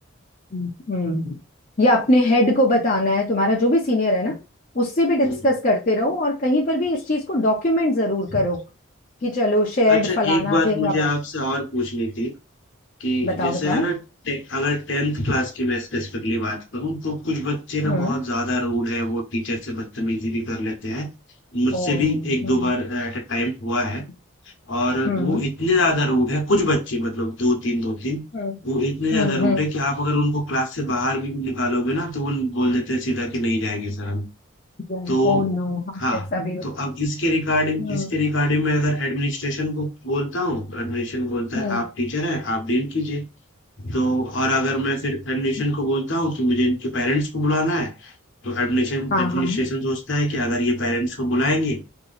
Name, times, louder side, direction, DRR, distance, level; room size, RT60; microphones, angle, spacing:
voice 1, 0.5-1.4 1.8-4.4 4.7-8.6 9.2-11.1 13.2-13.8 17.8-18.2 21.7-22.7 25.0-25.4 28.3-28.6 29.1-29.7 34.9-36.7 37.8-38.1 41.5-41.8 49.1-49.7, left 1 dB, 40° left, 0.8 m, -22 dB
voice 2, 9.9-12.3 13.0-14.0 14.2-21.1 21.5-24.0 24.7-28.2 28.6-34.3 35.1-35.5 35.9-36.3 36.6-43.2 43.8-48.1 48.4-51.8, left 1 dB, 60° left, 1.1 m, -24 dB
3.0 x 2.9 x 4.0 m
head